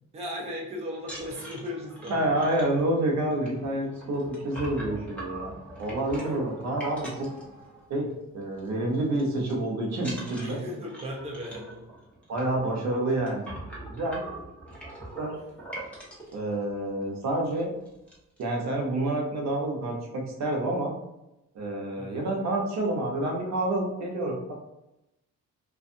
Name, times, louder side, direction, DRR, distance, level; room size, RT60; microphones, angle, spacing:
voice 1, 0.1-2.4 6.1-6.4 10.4-11.8 22.0-22.4, left 1 dB, 20° right, -2 dB, 0.6 m, -37 dB
sound 1, 1.0-8.1 8.4-8.7 8.9-9.5 10.0-16.3 17.0-17.1 17.4-17.6 17.9-18.4, right 1 dB, 5° left, 1.1 m, -42 dB
voice 2, 2.1-5.5 5.8-7.3 7.9-10.6 12.3-13.6 13.9-14.2 15.2-15.4 16.3-17.7 18.4-20.9 21.5-24.5, right 1 dB, 65° right, 0 dB, 0.9 m, -28 dB
2.6 x 2.5 x 2.5 m, 0.90 s
cardioid pair, 90°, 30 cm